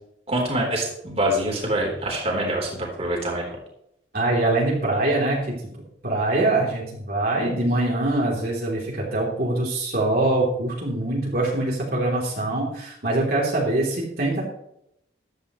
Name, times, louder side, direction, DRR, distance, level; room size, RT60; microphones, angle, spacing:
voice 1, 0.3-3.6, right 1 dB, 35° right, -1 dB, 3.7 m, -25 dB
voice 2, 4.1-14.4, right 2 dB, 50° right, -4 dB, 3.2 m, -24 dB
14.5 x 11.5 x 3.1 m, 0.76 s
head